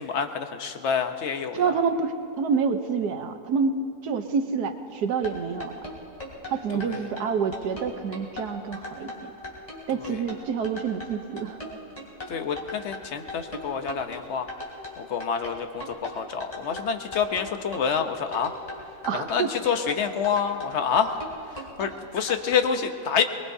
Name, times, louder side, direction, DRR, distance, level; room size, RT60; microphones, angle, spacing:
voice 1, 0.0-1.8 6.7-7.1 9.9-10.3 12.3-14.5 15.0-18.5 19.1-21.2 21.5-23.2, left 7 dB, 50° left, 7 dB, 1.1 m, -28 dB
voice 2, 1.5-5.7 6.5-9.3 9.9-11.6 19.0-19.5, right 5 dB, 80° right, 7 dB, 1.5 m, -27 dB
sound 1, 5.1-22.6, left 2 dB, 25° left, 3.2 m, -38 dB
23.5 x 21.5 x 2.7 m, 2.8 s
omnidirectional pair, 1.7 m